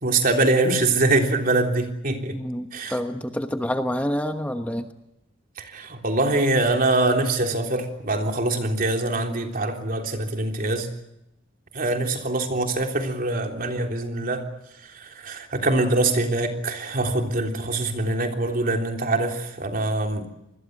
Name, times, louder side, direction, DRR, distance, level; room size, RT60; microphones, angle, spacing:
voice 1, 0.0-2.4 2.7-3.0 5.6-10.9 11.7-14.5 15.0-20.3, right 2 dB, 45° right, 3 dB, 3.4 m, -24 dB
voice 2, 2.3-4.9 11.9-12.0, equal, 5° left, 6 dB, 1.1 m, -28 dB
27.0 x 21.0 x 7.9 m, 0.86 s
head